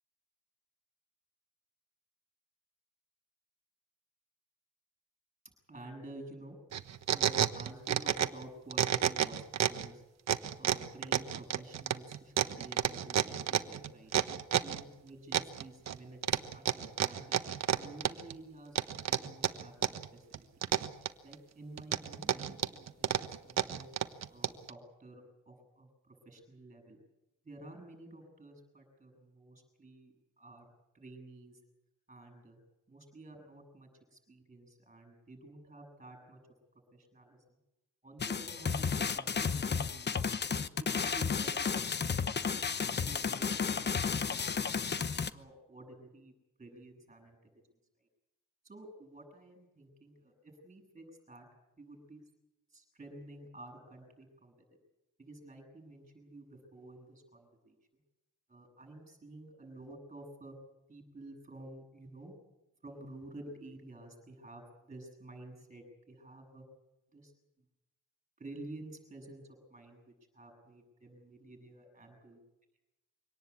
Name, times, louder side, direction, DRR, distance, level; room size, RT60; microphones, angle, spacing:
voice 1, 5.7-6.6 7.1-10.0 10.6-14.1 14.6-17.4 17.8-20.5 21.2-23.9 24.3-27.0 27.4-31.6 32.1-32.6 32.9-36.4 36.9-37.6 38.0-38.8 39.1-40.4 40.9-42.4 42.8-44.7 45.0-46.3 46.6-47.5 48.6-51.5 51.8-52.2 52.7-54.5 55.2-57.8 58.5-60.6 60.9-62.3 62.8-66.6 67.1-67.3 68.4-69.4 69.7-72.4, right 2 dB, 20° right, 3 dB, 7.7 m, -51 dB
sound 1, 6.7-8.4 8.7-9.9 10.3-14.8 15.3-16.0 16.2-18.3 18.8-20.1 20.3-21.3 21.8-24.7, right 9 dB, 55° right, 1.3 m, -30 dB
sound 2, 38.2-45.3, left 6 dB, 35° left, 0.9 m, -33 dB
24.5 x 18.5 x 8.5 m, 0.95 s
cardioid pair, 135°, 31 cm